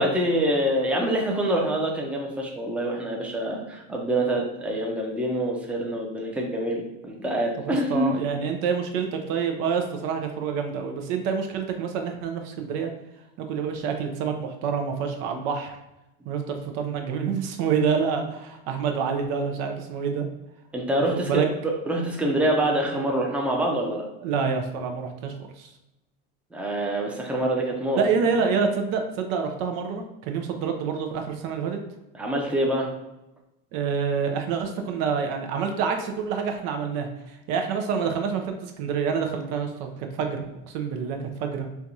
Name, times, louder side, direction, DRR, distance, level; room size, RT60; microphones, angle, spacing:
voice 1, 0.0-8.2 20.7-24.1 26.5-28.0 32.2-32.9, right 1 dB, 5° right, -1 dB, 0.6 m, -25 dB
voice 2, 7.7-12.9 13.4-15.8 16.3-20.3 21.1-21.5 24.2-25.7 28.0-31.8 33.7-41.7, right 6 dB, 60° right, 4 dB, 0.6 m, -27 dB
4.5 x 2.3 x 2.6 m, 0.93 s
supercardioid pair, 110°, 30 cm